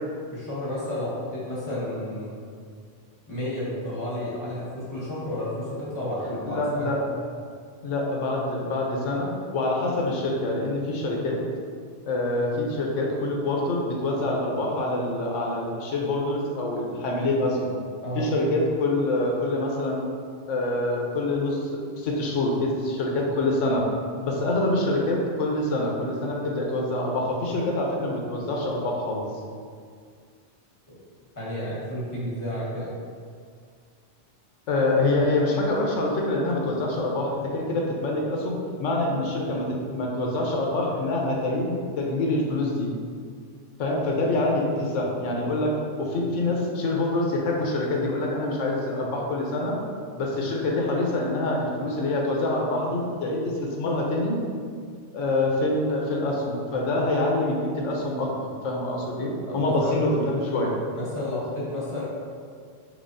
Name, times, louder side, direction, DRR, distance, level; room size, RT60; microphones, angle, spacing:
voice 1, 0.3-2.3 3.3-6.9 18.0-18.3 31.4-32.9 59.5-60.0 60.9-62.0, left 1 dB, 15° left, -7 dB, 0.9 m, -31 dB
voice 2, 6.4-7.0 7.8-11.4 12.1-17.7 18.1-20.0 20.5-23.8 24.2-29.2 34.7-42.9 43.8-49.8 50.2-54.4 55.1-58.3 58.6-60.8, left 2 dB, 90° left, -1 dB, 1.0 m, -26 dB
3.9 x 3.1 x 2.5 m, 2.1 s
omnidirectional pair, 1.2 m